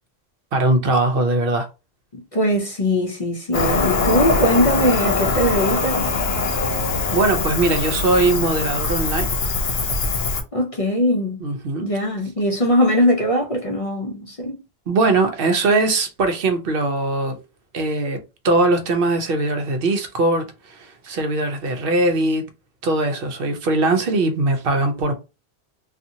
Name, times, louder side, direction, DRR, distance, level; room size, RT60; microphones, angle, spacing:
voice 1, 0.5-1.7 7.1-9.3 11.4-11.9 14.9-17.3 17.7-18.2 18.4-22.5 22.8-25.1, right 2 dB, 65° right, 0.8 m, -20 dB
voice 2, 2.1-6.1 10.5-11.4 11.8-14.6, equal, 40° left, 0.6 m, -21 dB
Cricket, 3.5-10.4, left 4 dB, 70° left, 0.9 m, -22 dB
2.7 x 2.4 x 2.6 m
omnidirectional pair, 1.1 m